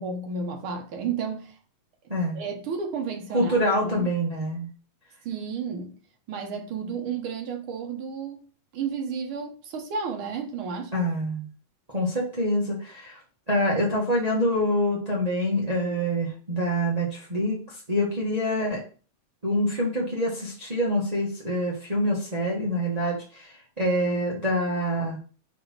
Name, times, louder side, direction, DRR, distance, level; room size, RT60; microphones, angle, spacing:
voice 1, 0.0-1.6 2.3-3.6 3.8-4.1 5.2-5.9 6.3-8.4 8.7-11.0, right 5 dB, 65° right, 1.3 m, -32 dB
voice 2, 2.1-2.4 3.3-4.7 10.9-11.5 11.9-13.2 13.5-18.8 19.4-25.2, equal, 25° right, 0.9 m, -26 dB
5.1 x 4.1 x 4.6 m
omnidirectional pair, 3.4 m